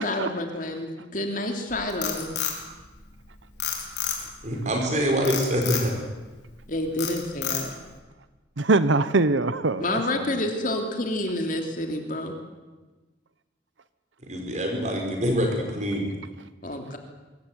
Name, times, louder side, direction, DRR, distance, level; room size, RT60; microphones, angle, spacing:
voice 1, 0.0-2.3 6.7-7.7 9.8-12.3 16.6-17.0, left 1 dB, 45° left, 3.1 m, -29 dB
Frog, 1.7-3.2 3.6-4.5 5.2-5.9 6.4-6.6 7.0-7.9, left 9 dB, 65° left, 4.4 m, -30 dB
voice 2, 4.4-5.9 14.3-16.1, equal, 40° right, 5.3 m, -25 dB
voice 3, 8.6-10.4, right 3 dB, 85° right, 0.9 m, -23 dB
24.0 x 14.5 x 9.5 m
head